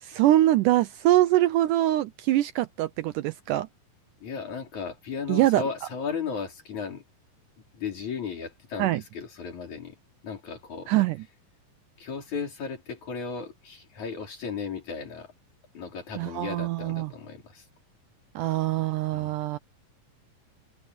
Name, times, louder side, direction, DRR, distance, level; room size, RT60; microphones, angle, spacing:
voice 1, 0.0-3.7 5.3-5.6 8.8-9.0 10.9-11.2 16.2-17.1 18.4-19.6, right 15 dB, 80° right, 2.0 m, -23 dB
voice 2, 4.2-7.0 7.7-10.0 10.2-10.9 12.0-15.3 15.7-17.7 19.1-19.3, left 5 dB, 55° left, 6.0 m, -35 dB
omnidirectional pair, 4.1 m